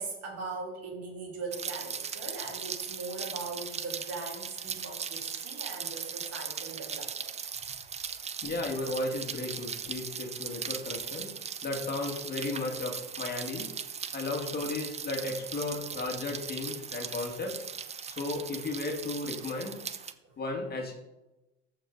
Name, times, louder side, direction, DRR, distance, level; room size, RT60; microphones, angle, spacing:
voice 1, 0.0-7.3 20.2-20.4, right 3 dB, 50° right, -1 dB, 3.2 m, -40 dB
Rain, 1.5-20.1, right 7 dB, 20° right, 0.6 m, -39 dB
voice 2, 8.4-11.3 11.6-13.7 14.1-17.7 18.1-19.8 20.4-20.9, left 2 dB, 30° left, 1 dB, 2.1 m, -34 dB
14.0 x 4.8 x 4.0 m, 0.99 s
hypercardioid pair, 75°, 32 cm